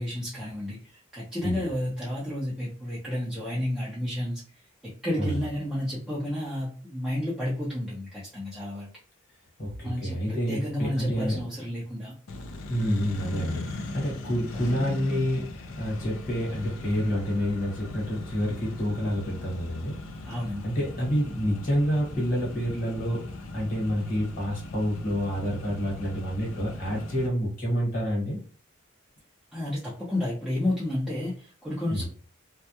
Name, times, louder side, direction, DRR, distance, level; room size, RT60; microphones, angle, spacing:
voice 1, 0.0-4.4 4.8-8.9 9.8-12.1 20.2-20.6 29.5-32.1, left 1 dB, ahead, -8 dB, 0.5 m, -31 dB
voice 2, 9.6-11.4 12.7-19.9 20.6-28.4 31.9-32.1, equal, 40° left, -3 dB, 1.2 m, -28 dB
Accelerating revving vroom, 12.3-27.3, left 2 dB, 85° left, 0.4 m, -39 dB
2.2 x 2.1 x 2.8 m, 0.42 s
head